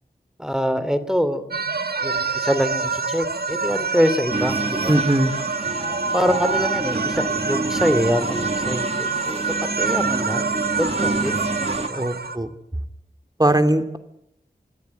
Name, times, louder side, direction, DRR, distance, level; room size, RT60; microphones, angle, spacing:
voice 1, 0.4-1.5 2.0-5.0 6.1-9.5 9.8-11.3 11.8-12.0, equal, 5° right, 13 dB, 2.8 m, -24 dB
sound 1, 1.5-12.4, right 4 dB, 70° right, 1.7 m, -26 dB
sound 2, 4.3-11.9, right 2 dB, 40° right, 1.9 m, -29 dB
voice 2, 4.9-5.3 12.0-12.5 13.4-14.0, right 1 dB, 25° right, 7 dB, 3.1 m, -19 dB
26.5 x 16.5 x 9.7 m, 0.82 s
wide cardioid pair, 55°, 17 cm